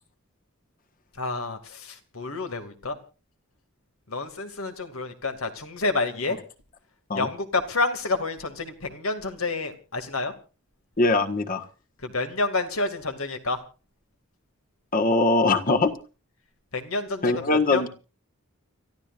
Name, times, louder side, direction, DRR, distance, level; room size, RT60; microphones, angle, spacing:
voice 1, 1.1-3.0 4.1-6.4 7.1-10.3 12.0-13.6 16.7-17.9, left 3 dB, 80° left, 7 dB, 2.5 m, -29 dB
voice 2, 11.0-11.7 14.9-15.9 17.2-17.9, left 2 dB, 40° left, 7 dB, 1.5 m, -22 dB
30.0 x 14.0 x 2.6 m, 0.35 s
head